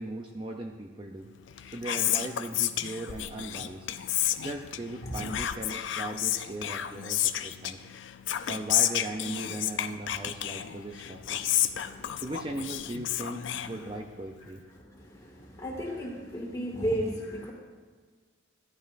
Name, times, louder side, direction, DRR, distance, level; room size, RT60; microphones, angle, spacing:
voice 1, 0.0-1.3 1.7-3.9 4.4-7.8 8.5-11.5 12.2-14.6, right 1 dB, 25° right, 2 dB, 0.5 m, -38 dB
Whispering, 1.4-14.3, left 12 dB, 70° left, 0.4 m, -31 dB
voice 2, 11.4-12.2 14.7-17.5, equal, 15° left, -3 dB, 2.0 m, -35 dB
15.0 x 11.0 x 2.6 m, 1.5 s
head